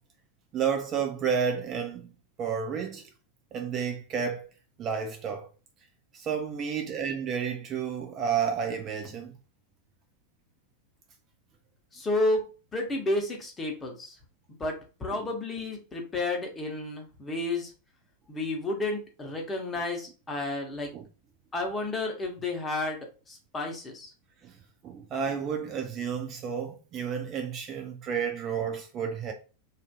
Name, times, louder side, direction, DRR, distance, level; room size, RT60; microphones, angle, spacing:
voice 1, 0.5-2.1 2.4-3.1 3.5-4.5 4.8-5.5 6.1-9.4 20.9-21.1 24.4-24.5 24.8-29.3, right 7 dB, 30° right, 0.4 m, -31 dB
voice 2, 11.9-12.4 12.7-14.2 14.6-17.7 18.3-20.9 21.5-24.1, left 2 dB, 15° left, 0.8 m, -31 dB
2.5 x 2.4 x 2.2 m
figure-of-eight pair, 90°, 0 cm